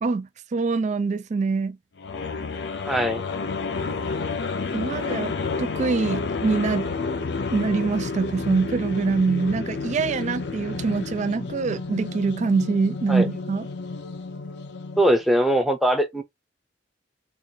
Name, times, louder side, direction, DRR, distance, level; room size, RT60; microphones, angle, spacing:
voice 1, 0.0-1.8 4.7-7.1 7.5-13.7, right 4 dB, 40° right, 0.4 m, -24 dB
sound 1, 2.0-15.2, left 4 dB, 70° left, 0.6 m, -30 dB
voice 2, 2.9-3.2 13.1-13.3 15.0-16.2, equal, ahead, 0.7 m, -21 dB
4.0 x 2.5 x 2.8 m
head